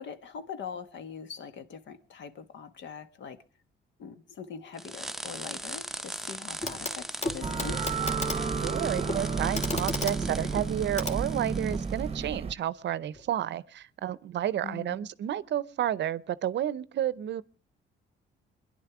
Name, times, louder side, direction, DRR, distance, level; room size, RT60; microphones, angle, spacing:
voice 1, 0.0-3.4 4.0-7.9 14.6-15.1, left 6 dB, 65° left, 1.4 m, -42 dB
sound 1, 4.8-12.0, right 1 dB, ahead, 0.7 m, -40 dB
Clock, 6.6-7.0 7.2-11.9 13.1-13.2, left 2 dB, 35° left, 1.9 m, -36 dB
sound 2, 7.4-12.5, right 5 dB, 30° right, 0.8 m, -31 dB
voice 2, 8.6-17.4, right 11 dB, 65° right, 0.7 m, -31 dB
23.5 x 11.0 x 4.8 m
cardioid pair, 90°, 20 cm